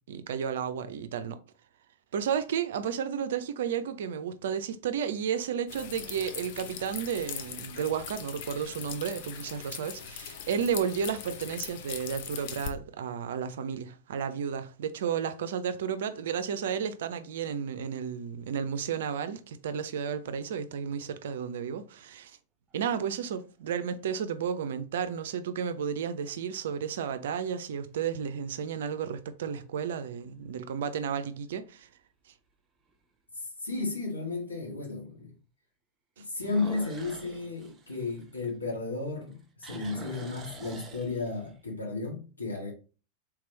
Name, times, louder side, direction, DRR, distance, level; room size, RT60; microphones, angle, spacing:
voice 1, 0.1-1.4 2.1-22.4 22.7-31.9 36.2-36.3, right 7 dB, 60° right, 0.4 m, -32 dB
sound 1, 5.7-12.7, left 8 dB, 50° left, 0.5 m, -41 dB
sound 2, 22.7-23.4 24.0-24.1 29.4-29.8 30.3-30.4 31.0-31.1 31.3-31.4 32.9-33.0 36.3-38.9 39.2-41.6, right 2 dB, 20° right, 0.7 m, -47 dB
voice 2, 33.6-35.3 36.2-42.7, left 3 dB, 80° left, 1.3 m, -33 dB
3.5 x 3.0 x 3.0 m
figure-of-eight pair, 90°, 0 cm